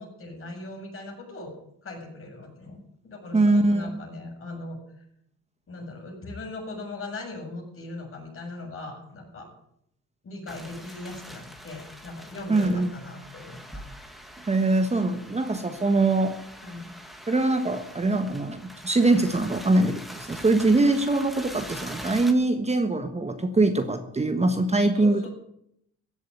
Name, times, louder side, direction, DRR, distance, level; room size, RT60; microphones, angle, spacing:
voice 1, 0.0-1.5 1.8-5.0 5.7-9.5 10.2-13.8 16.6-16.9 24.9-25.3, left 2 dB, 45° left, 0 dB, 7.0 m, -39 dB
voice 2, 3.3-4.0 12.5-13.0 14.5-16.3 17.3-25.3, right 2 dB, 20° right, 7 dB, 1.4 m, -23 dB
sound 1, 10.5-22.3, equal, ahead, 2.3 m, -43 dB
15.0 x 7.5 x 9.6 m, 0.74 s
cardioid pair, 90°, 30 cm